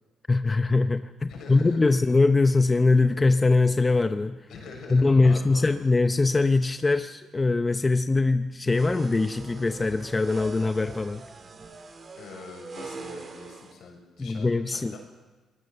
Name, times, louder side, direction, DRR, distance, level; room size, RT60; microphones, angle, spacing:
voice 1, 0.3-4.4 4.9-11.2 14.2-15.0, left 3 dB, 25° left, 9 dB, 0.8 m, -22 dB
voice 2, 1.3-2.1 4.5-5.8 12.2-15.0, left 4 dB, 70° left, 2 dB, 7.1 m, -44 dB
sound 1, 8.7-13.7, right 4 dB, 40° right, 2.7 m, -42 dB
23.0 x 20.0 x 6.8 m, 1.2 s
cardioid pair, 90°, 0 cm